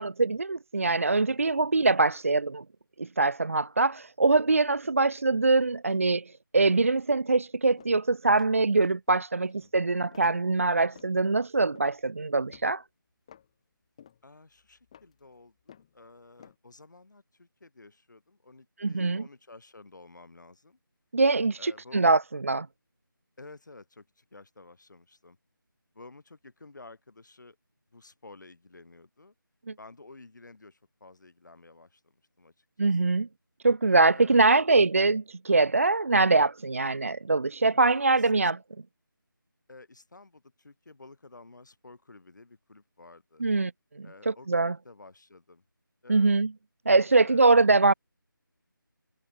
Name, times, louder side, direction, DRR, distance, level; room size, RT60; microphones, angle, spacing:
voice 1, 0.0-2.6 3.0-12.8 18.8-19.2 21.1-22.7 29.7-29.8 32.8-33.3 33.6-38.6 43.4-43.7 44.0-44.7 46.1-46.5 46.9-47.9, right 3 dB, 40° right, 0.5 m, -23 dB
sound 1, 7.8-8.0 8.4-8.7 9.1-9.7 10.1-11.2 11.6-12.0 12.5-12.8 13.3-13.5 14.0-14.3 14.6-16.0 16.4-16.6, left 9 dB, 15° left, 2.3 m, -55 dB
voice 2, 9.4-9.7 14.2-20.8 21.6-22.0 23.4-25.4 25.9-27.6 27.9-29.3 29.8-33.2 34.1-34.7 37.7-38.5 39.7-43.4 44.0-45.6 46.0-46.3 47.1-47.6, left 3 dB, 55° left, 6.6 m, -52 dB
figure-of-eight pair, 170°, 12 cm